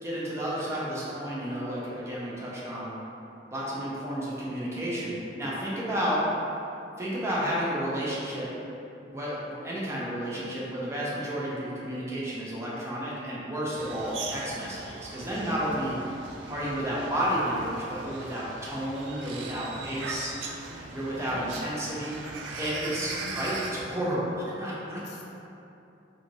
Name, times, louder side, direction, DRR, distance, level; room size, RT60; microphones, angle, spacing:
voice 1, 0.0-3.0 3.5-6.2 7.0-8.5 9.1-15.9 16.5-20.3 20.9-22.2 22.6-25.0, equal, 15° right, -7 dB, 0.5 m, -31 dB
voice 2, 5.9-6.2 15.7-15.8 20.3-20.9 21.3-22.0 22.9-23.4 24.9-25.2, left 1 dB, 65° left, -2 dB, 0.4 m, -46 dB
sound 1, 13.7-23.7, right 3 dB, 80° right, 0.3 m, -40 dB
2.6 x 2.4 x 2.9 m, 2.8 s
head